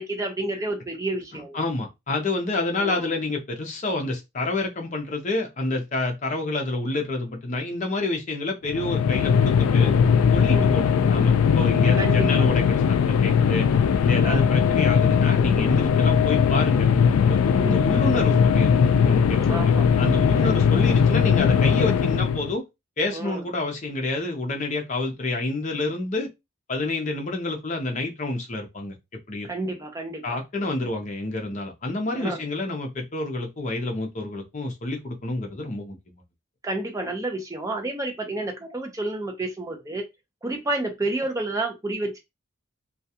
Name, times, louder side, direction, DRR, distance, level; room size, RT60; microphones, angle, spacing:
voice 1, 0.0-1.6 2.7-3.0 10.5-10.7 11.9-12.5 14.2-14.5 17.6-17.9 19.5-19.9 20.4-20.8 23.1-23.4 29.4-30.4 32.2-32.4 36.6-40.0 40.4-42.2, right 2 dB, 15° right, 0.5 m, -30 dB
voice 2, 1.3-9.9 10.3-13.7 14.0-16.9 17.2-18.8 19.1-19.7 20.0-22.6 23.0-26.3 26.7-28.9 29.3-29.5 30.2-36.0, left 2 dB, 35° left, 0.6 m, -28 dB
sound 1, 8.7-22.5, left 7 dB, 90° left, 0.3 m, -19 dB
2.3 x 2.2 x 2.7 m
head